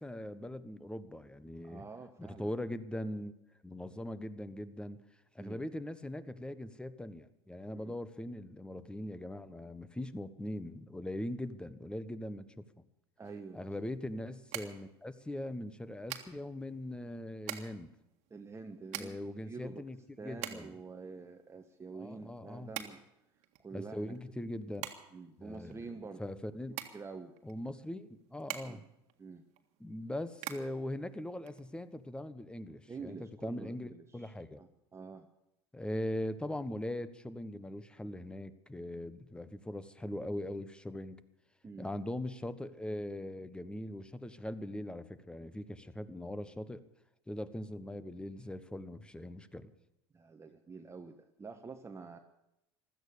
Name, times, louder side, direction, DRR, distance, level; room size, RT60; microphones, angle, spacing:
voice 1, 0.0-1.8 2.2-3.3 3.6-5.0 5.3-12.6 13.5-17.9 18.9-20.0 20.2-20.7 21.9-22.7 23.7-24.9 25.4-26.8 27.4-28.8 29.8-34.6 35.7-41.2 41.8-46.8 47.3-49.7, left 1 dB, 5° left, 14 dB, 1.3 m, -41 dB
voice 2, 1.6-2.5 5.4-5.6 7.7-7.9 13.2-13.6 18.3-19.1 19.4-19.8 20.2-23.0 23.6-24.1 25.1-26.2 26.7-27.4 28.6-28.8 29.2-29.4 32.9-34.3 34.6-35.3 41.6-41.9 50.1-52.2, right 4 dB, 20° right, 5 dB, 1.3 m, -47 dB
sound 1, 13.2-32.1, right 13 dB, 60° right, 1.8 m, -47 dB
16.0 x 13.0 x 6.9 m, 0.87 s
hypercardioid pair, 80°, 13 cm